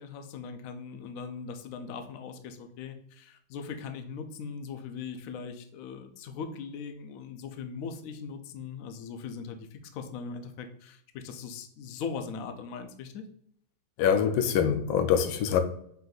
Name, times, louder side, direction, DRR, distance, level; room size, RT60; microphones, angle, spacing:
voice 1, 0.0-13.2, left 5 dB, 70° left, 0.8 m, -40 dB
voice 2, 14.0-15.6, left 8 dB, 85° left, 1.3 m, -24 dB
5.4 x 2.6 x 3.8 m
omnidirectional pair, 2.1 m